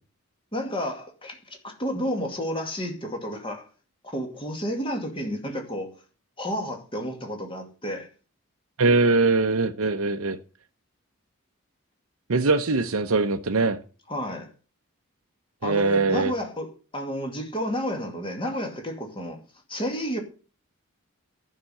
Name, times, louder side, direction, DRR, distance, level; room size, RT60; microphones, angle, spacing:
voice 1, 0.5-3.7 4.0-5.9 6.4-8.1 14.1-14.5 15.6-19.4 19.7-20.2, equal, 25° left, 2.3 m, -31 dB
voice 2, 8.8-10.4 12.3-13.8 15.6-16.3, right 3 dB, 70° right, 0.8 m, -22 dB
11.5 x 6.0 x 7.7 m
head